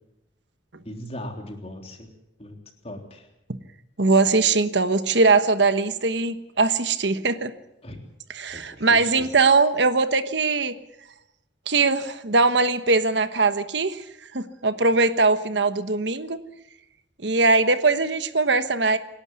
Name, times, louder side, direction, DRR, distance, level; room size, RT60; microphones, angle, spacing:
voice 1, 0.9-2.1 2.4-2.6 2.8-3.3 7.8-8.0 8.5-9.3, left 1 dB, 35° left, 3 dB, 3.5 m, -38 dB
voice 2, 4.0-7.5 8.3-10.7 11.7-14.0 14.3-16.4 17.2-19.0, right 3 dB, 70° right, 11 dB, 1.3 m, -21 dB
27.0 x 11.5 x 9.6 m, 0.88 s
head